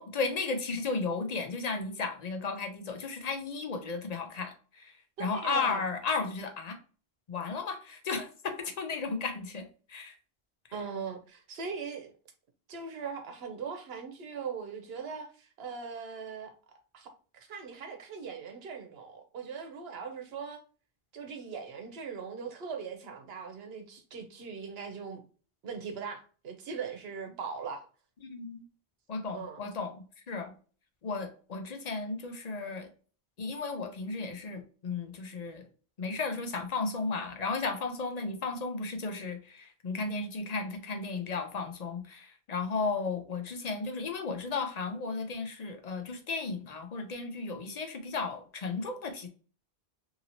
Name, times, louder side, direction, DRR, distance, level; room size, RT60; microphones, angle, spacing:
voice 1, 0.0-6.8 7.3-10.1 28.2-28.6 29.1-30.5 31.0-32.9 33.4-35.6 36.0-49.3, left 4 dB, 45° left, 0.6 m, -34 dB
voice 2, 5.2-5.8 10.7-12.1 12.7-16.5 16.9-17.1 17.5-20.6 21.1-25.2 25.6-27.8 29.3-29.6, right 5 dB, 70° right, 1.0 m, -40 dB
2.8 x 2.8 x 2.7 m
omnidirectional pair, 1.1 m